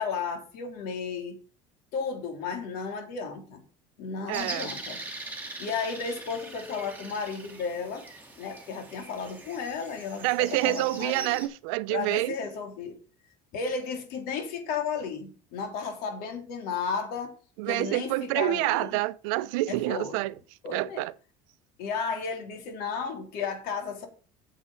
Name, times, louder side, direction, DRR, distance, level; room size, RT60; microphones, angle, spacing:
voice 1, 0.0-1.4 1.9-3.6 4.0-5.0 5.6-8.1 8.4-11.3 11.9-13.0 13.5-17.3 17.7-19.0 19.7-20.2 20.6-21.0 21.8-24.1, left 5 dB, 70° left, 3.5 m, -33 dB
sound 1, 4.3-11.5, right 2 dB, 10° right, 3.6 m, -42 dB
voice 2, 4.3-4.7 10.2-12.3 17.6-20.3 20.7-21.1, right 19 dB, 85° right, 0.6 m, -27 dB
8.7 x 7.3 x 5.6 m
supercardioid pair, 110°, 16 cm